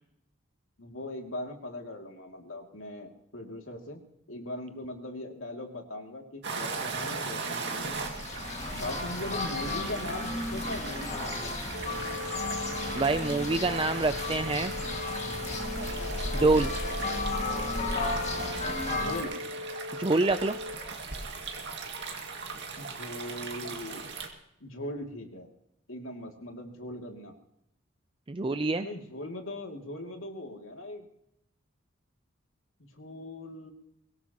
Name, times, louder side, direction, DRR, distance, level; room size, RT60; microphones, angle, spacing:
voice 1, 0.8-4.0 4.3-8.0 8.7-11.9 15.9-16.5 18.9-19.4 22.8-24.1 24.6-25.5 25.9-27.3 28.8-31.1 32.9-33.7, left 1 dB, 90° left, 2 dB, 2.6 m, -40 dB
sound 1, 6.4-24.3, right 4 dB, 60° right, 2.2 m, -39 dB
sound 2, 7.8-19.2, left 2 dB, 35° left, 2.1 m, -34 dB
sound 3, 11.7-20.8, left 3 dB, 85° right, 1.3 m, -40 dB
voice 2, 12.9-14.7 16.4-16.7 20.0-20.6 28.3-28.9, right 3 dB, 25° right, 9 dB, 0.4 m, -26 dB
23.5 x 17.0 x 3.0 m, 0.78 s
head